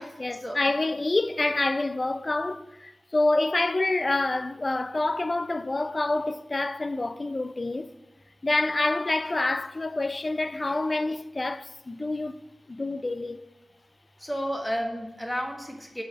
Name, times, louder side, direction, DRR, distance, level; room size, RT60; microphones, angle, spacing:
voice 1, 0.0-7.9 8.4-12.3 12.7-13.4, left 2 dB, 35° left, 0.4 m, -27 dB
voice 2, 14.2-16.0, equal, 10° left, 1.5 m, -31 dB
7.7 x 4.9 x 6.4 m
wide cardioid pair, 95°, 0 cm